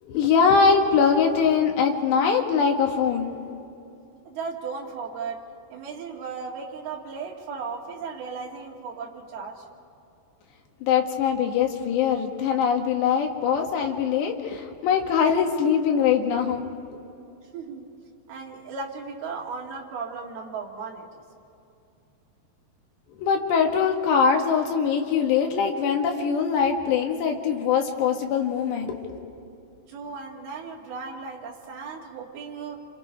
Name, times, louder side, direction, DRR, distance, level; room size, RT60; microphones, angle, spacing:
voice 1, 0.0-3.4 10.8-16.6 16.9-17.0 23.2-29.2, left 6 dB, 80° left, 2 dB, 3.8 m, -22 dB
voice 2, 4.3-5.4 5.7-9.7 17.5-17.9 18.3-21.2 29.9-32.8, right 5 dB, 65° right, -2 dB, 4.2 m, -36 dB
29.0 x 27.0 x 4.6 m, 2.6 s
omnidirectional pair, 4.9 m